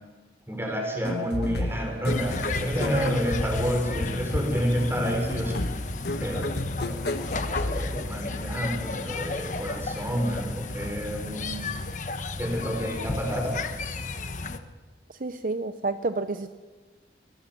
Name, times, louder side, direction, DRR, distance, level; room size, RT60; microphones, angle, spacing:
voice 1, 0.5-5.7 6.2-11.8 12.4-13.6, equal, 15° right, 3 dB, 4.8 m, -29 dB
sound 1, 1.0-8.7, left 1 dB, 70° left, 1.2 m, -33 dB
sound 2, 2.1-14.6, left 3 dB, 45° left, 1.2 m, -33 dB
voice 2, 15.1-16.5, right 3 dB, 50° right, 10 dB, 0.7 m, -29 dB
24.0 x 19.5 x 7.6 m, 1.3 s
head